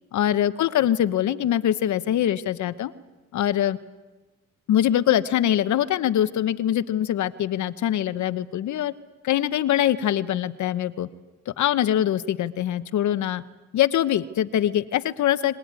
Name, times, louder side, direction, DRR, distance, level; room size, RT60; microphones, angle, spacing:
voice 1, 0.1-2.9 3.3-3.8 4.7-8.9 9.2-11.1 11.5-13.4 13.7-15.6, left 11 dB, 70° left, 13 dB, 1.0 m, -23 dB
24.5 x 18.5 x 9.7 m, 1.2 s
cardioid pair, 90°, 30 cm